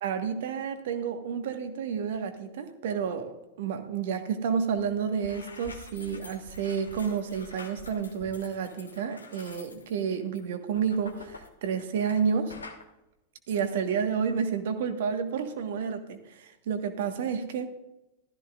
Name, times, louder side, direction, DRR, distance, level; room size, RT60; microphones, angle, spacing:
voice 1, 0.0-12.6 13.5-17.7, right 6 dB, 55° right, 7 dB, 1.5 m, -30 dB
sound 1, 4.7-4.9 5.1-12.2 12.5-12.8, left 3 dB, 75° left, 1.3 m, -47 dB
15.0 x 13.5 x 2.5 m, 0.95 s
figure-of-eight pair, 90°, 0 cm